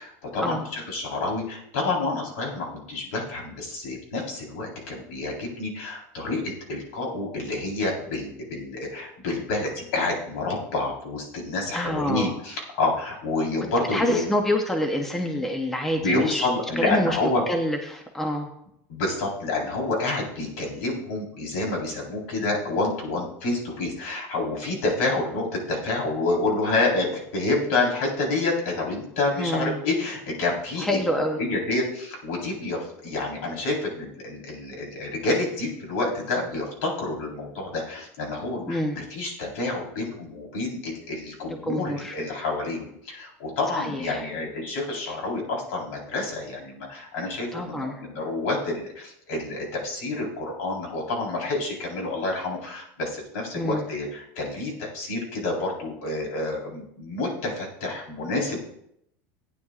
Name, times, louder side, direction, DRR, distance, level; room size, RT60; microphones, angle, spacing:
voice 1, 0.0-14.2 16.0-17.4 18.9-31.0 31.4-58.6, left 2 dB, 70° left, -1 dB, 4.0 m, -28 dB
voice 2, 11.7-12.3 13.9-16.5 16.8-17.2 17.5-18.5 29.4-29.8 30.8-31.4 38.7-39.0 41.6-42.1 43.7-44.3 47.5-48.0 53.5-53.8, left 1 dB, 5° left, 3 dB, 0.7 m, -27 dB
17.5 x 9.6 x 2.4 m, 0.76 s
cardioid pair, 180°, 7 cm